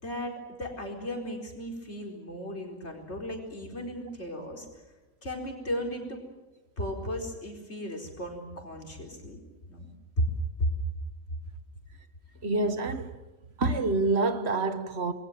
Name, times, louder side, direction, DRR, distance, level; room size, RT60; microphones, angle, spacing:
voice 1, 0.0-4.7 5.2-6.2 6.8-9.4 9.7-9.9 10.2-10.3 10.6-10.7, equal, 55° left, 4.7 m, -35 dB
voice 2, 12.4-13.2 13.6-15.1, right 3 dB, 55° right, 1.5 m, -27 dB
27.5 x 21.5 x 7.5 m
omnidirectional pair, 1.4 m